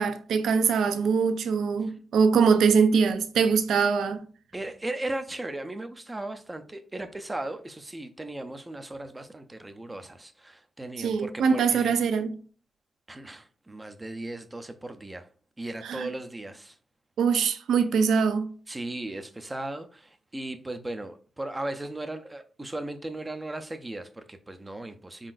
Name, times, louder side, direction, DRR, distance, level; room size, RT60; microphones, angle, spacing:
voice 1, 0.0-4.2 11.0-12.4 15.8-16.1 17.2-18.5, right 6 dB, 85° right, 0.5 m, -23 dB
voice 2, 4.5-11.9 13.1-15.3 15.6-16.8 18.7-25.3, right 2 dB, 10° right, 0.4 m, -37 dB
5.2 x 3.8 x 2.5 m
wide cardioid pair, 175°, 0 cm